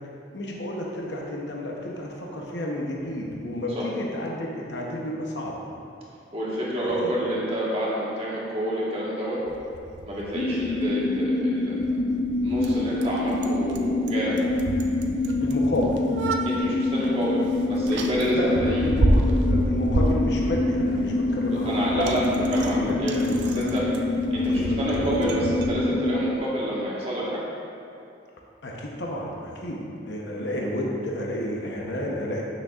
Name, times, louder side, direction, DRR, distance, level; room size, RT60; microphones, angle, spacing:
voice 1, 0.3-5.6 6.8-7.1 15.4-16.0 18.3-22.4 22.7-23.7 24.4-25.4 28.6-32.4, left 1 dB, 75° left, -2 dB, 0.9 m, -31 dB
voice 2, 6.3-9.4 10.1-11.7 12.4-14.4 16.4-18.8 21.5-23.8 24.3-27.4, right 1 dB, 35° right, -6 dB, 1.4 m, -28 dB
Bicycle, 9.5-25.8, right 1 dB, 75° right, 0.5 m, -30 dB
sound 1, 10.3-26.4, left 2 dB, 40° left, 0.3 m, -26 dB
8.9 x 6.4 x 2.4 m, 2.6 s
head